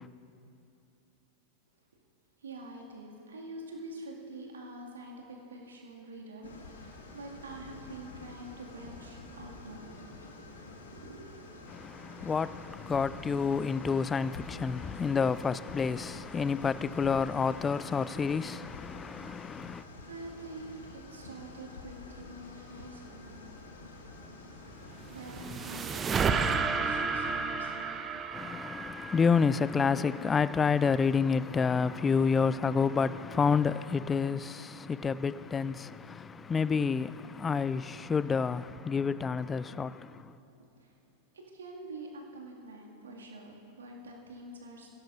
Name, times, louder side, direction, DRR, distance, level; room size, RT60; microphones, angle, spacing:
voice 1, 2.4-10.0 10.9-11.4 20.0-23.5 25.1-27.8 40.8-40.9 41.3-44.9, right 2 dB, 70° right, 2.2 m, -46 dB
sound 1, 6.4-26.0, left 3 dB, 65° left, 1.7 m, -48 dB
voice 2, 12.9-19.8 28.3-34.7 35.0-35.8 36.5-37.1 37.4-39.9, left 5 dB, 20° left, 0.3 m, -28 dB
sound 2, 24.9-30.3, right 5 dB, 20° right, 0.7 m, -32 dB
21.5 x 16.5 x 2.6 m
figure-of-eight pair, 90°, 0 cm